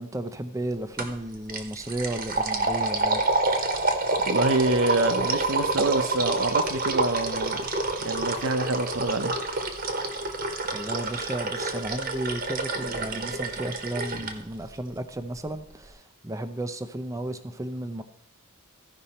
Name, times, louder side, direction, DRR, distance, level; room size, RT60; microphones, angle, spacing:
voice 1, 0.0-3.2 10.7-18.0, right 1 dB, 15° right, 10 dB, 0.5 m, -33 dB
sound 1, 1.0-1.2 1.5-14.3, right 3 dB, 45° right, 1.0 m, -28 dB
voice 2, 4.2-7.6 8.0-9.3, right 2 dB, 65° right, 9 dB, 0.8 m, -26 dB
14.5 x 5.3 x 4.2 m, 0.73 s
head